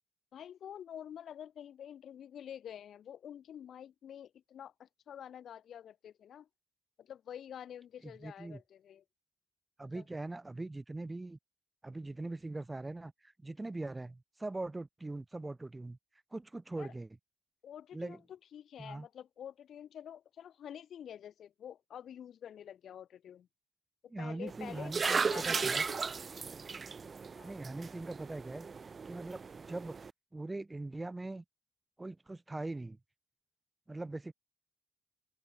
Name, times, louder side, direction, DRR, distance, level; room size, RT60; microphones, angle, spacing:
voice 1, 0.3-6.5 7.0-9.0 9.9-10.0 16.7-16.9 17.6-23.5 24.0-26.1 27.3-27.6, left 9 dB, 65° left, 1.6 m, -48 dB
voice 2, 8.0-8.6 9.8-11.4 11.8-16.0 16.3-17.1 17.9-18.2 18.8-19.1 24.1-25.8 27.4-28.7 29.1-30.0 30.3-31.4 32.0-33.0 33.9-34.3, right 2 dB, 15° right, 1.2 m, -41 dB
sound 1, 24.5-30.1, right 5 dB, 35° right, 0.4 m, -36 dB
cardioid pair, 125°, 0 cm